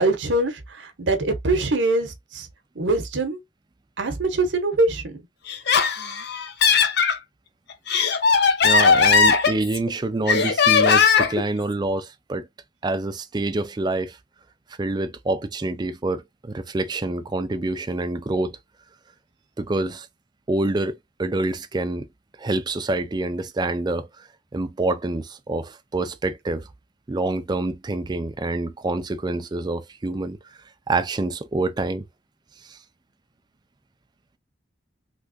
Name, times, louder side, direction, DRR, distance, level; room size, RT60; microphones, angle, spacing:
voice 1, 0.0-2.5 2.7-3.4 4.0-5.2, right 2 dB, 75° right, 0.8 m, -23 dB
Laughter, 5.5-7.2 7.7-9.9 10.3-11.4, left 5 dB, 60° left, 0.6 m, -18 dB
voice 2, 8.6-12.5 12.8-14.2 14.8-18.6 19.6-20.1 20.5-22.1 22.4-24.3 24.5-26.7 27.1-30.4 30.9-32.1 32.6-32.8, right 2 dB, 25° right, 0.4 m, -26 dB
3.4 x 2.9 x 2.6 m
head